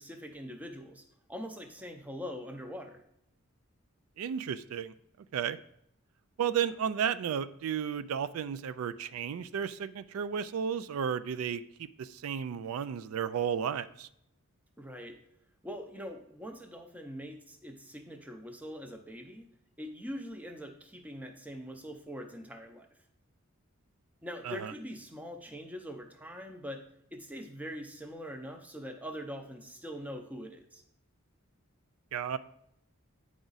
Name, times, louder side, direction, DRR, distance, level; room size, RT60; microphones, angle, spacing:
voice 1, 0.0-3.0 14.8-15.2 15.6-19.5 19.8-22.9 24.2-26.8 27.1-30.8, equal, 5° right, 5 dB, 0.6 m, -43 dB
voice 2, 4.2-4.9 5.3-5.6 6.4-14.1 24.4-24.7 32.1-32.4, right 8 dB, 80° right, 14 dB, 0.3 m, -33 dB
9.1 x 4.9 x 4.0 m, 0.77 s
head